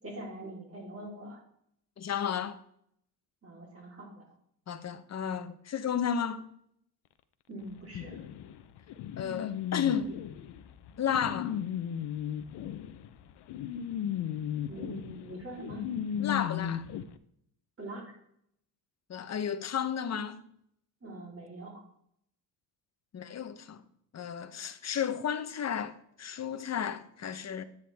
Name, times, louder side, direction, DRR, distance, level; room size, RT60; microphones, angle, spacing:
voice 1, 0.0-1.4 3.4-4.2 7.5-8.2 14.7-15.9 17.8-18.2 21.0-21.8, right 1 dB, 30° right, 3.7 m, -43 dB
voice 2, 2.0-2.6 4.7-6.5 9.2-10.2 11.0-11.6 16.2-16.8 19.1-20.4 23.1-23.8 24.1-27.6, left 8 dB, 35° left, 1.0 m, -33 dB
sound 1, 7.9-17.0, left 10 dB, 65° left, 0.9 m, -36 dB
10.5 x 9.2 x 3.5 m
cardioid pair, 100°, 45 cm